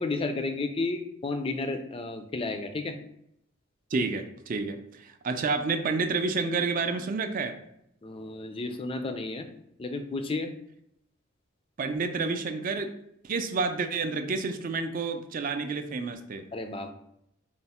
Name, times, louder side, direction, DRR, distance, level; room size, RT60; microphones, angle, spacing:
voice 1, 0.0-3.0 8.0-9.5 9.8-10.5 16.5-16.9, left 3 dB, 25° left, 7 dB, 0.4 m, -32 dB
voice 2, 3.9-7.6 11.8-12.9 13.2-16.5, right 4 dB, 40° right, 8 dB, 0.4 m, -29 dB
4.4 x 2.1 x 4.1 m, 0.74 s
head